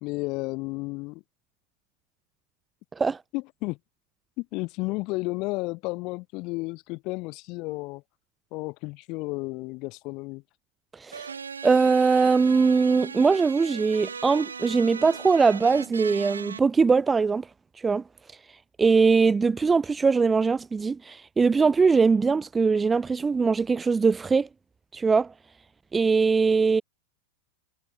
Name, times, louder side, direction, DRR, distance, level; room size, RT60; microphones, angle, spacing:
voice 1, 0.0-1.2 3.3-3.8 4.4-8.0 8.5-10.4, left 24 dB, 40° left, 0.6 m, -32 dB
voice 2, 10.9-11.3 11.6-17.5 17.8-18.0 18.8-24.5 24.9-25.3 25.9-26.8, right 4 dB, 15° right, 0.5 m, -21 dB
sound 1, 11.1-16.6, right 6 dB, 75° right, 1.0 m, -38 dB
figure-of-eight pair, 90°, 0 cm